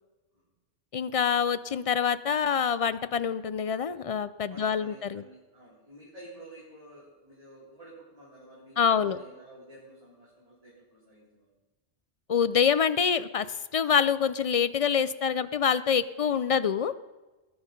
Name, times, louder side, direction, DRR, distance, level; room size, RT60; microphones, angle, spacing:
voice 1, 0.9-5.2 8.8-9.2 12.3-13.5 13.7-16.9, left 7 dB, 55° left, 14 dB, 0.3 m, -26 dB
voice 2, 4.5-11.6, right 1 dB, 30° right, -8 dB, 4.0 m, -50 dB
20.0 x 10.5 x 5.3 m, 1.2 s
omnidirectional pair, 1.2 m